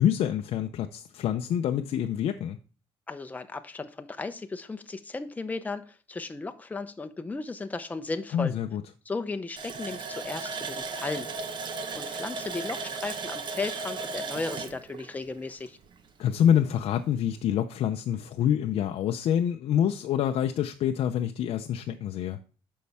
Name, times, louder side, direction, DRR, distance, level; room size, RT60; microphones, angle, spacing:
voice 1, 0.0-2.6 8.3-8.8 16.2-22.4, left 9 dB, 65° left, 0.6 m, -26 dB
voice 2, 3.1-8.5 9.1-11.3 11.9-15.8, left 3 dB, 15° left, 0.7 m, -35 dB
Water tap faucet, 9.6-16.1 16.4-16.5 16.9-17.1, right 4 dB, 45° right, 1.0 m, -36 dB
8.4 x 5.6 x 3.5 m
cardioid pair, 115°, 11 cm